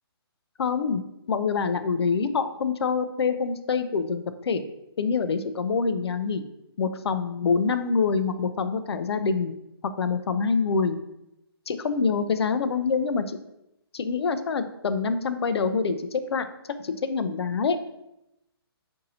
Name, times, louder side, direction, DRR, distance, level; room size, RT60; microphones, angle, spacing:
voice 1, 0.6-1.0 1.3-4.6 5.0-6.5 6.8-9.5 10.0-11.0 11.7-13.4 13.9-16.5 16.8-17.8, left 5 dB, 85° left, 10 dB, 0.4 m, -25 dB
4.1 x 2.6 x 2.7 m, 0.86 s
hypercardioid pair, 175°, 13 cm